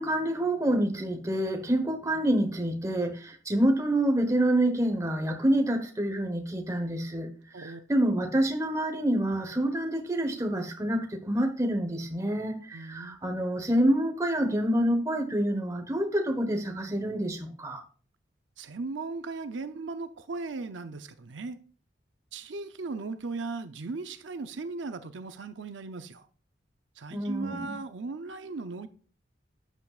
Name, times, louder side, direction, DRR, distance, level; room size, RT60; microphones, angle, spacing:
voice 1, 0.0-7.3 7.6-17.8 27.1-27.8, right 1 dB, 15° right, 1.1 m, -27 dB
voice 2, 12.7-13.2 18.6-21.6 22.3-26.3 27.0-28.9, right 3 dB, 75° right, 0.6 m, -37 dB
11.5 x 8.2 x 2.4 m
head